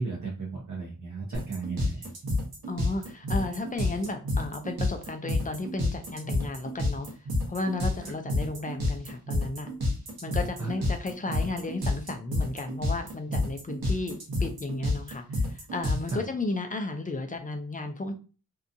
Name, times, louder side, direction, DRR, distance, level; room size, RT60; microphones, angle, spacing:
voice 1, 0.0-2.1 10.6-10.7 16.1-16.2, right 3 dB, 50° right, -3 dB, 0.7 m, -34 dB
sound 1, 1.3-16.1, left 2 dB, 75° right, 0.9 m, -29 dB
voice 2, 2.7-7.1 7.5-9.7 10.2-18.1, left 2 dB, 25° left, 5 dB, 0.4 m, -34 dB
2.7 x 2.3 x 2.5 m, 0.35 s
wide cardioid pair, 130°, 36 cm